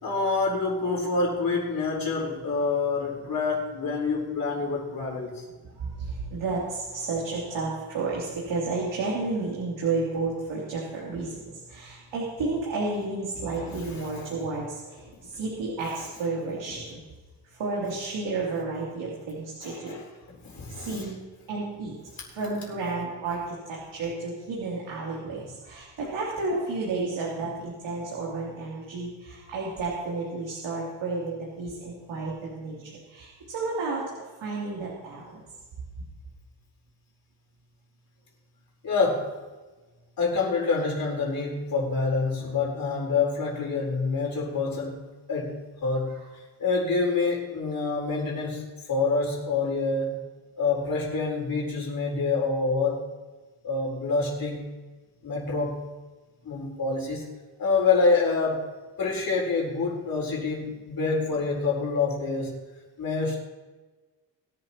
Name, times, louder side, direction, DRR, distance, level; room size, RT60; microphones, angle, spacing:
voice 1, 0.0-5.4 13.3-14.3 16.0-16.1 16.7-16.8 19.6-21.1 25.4-25.5 38.8-39.4 40.2-46.2 46.6-50.2 50.6-53.0 53.6-54.8 55.2-55.9 56.4-57.3 57.6-58.7 59.0-62.6 63.0-63.4, left 4 dB, 50° left, -3 dB, 4.3 m, -27 dB
voice 2, 5.8-11.3 11.7-17.0 17.6-19.9 20.7-21.2 21.5-22.0 22.3-32.8 33.1-34.1 34.4-35.4, right 3 dB, 80° right, -5 dB, 3.3 m, -31 dB
22.0 x 11.0 x 3.0 m, 1.3 s
cardioid pair, 125°, 42 cm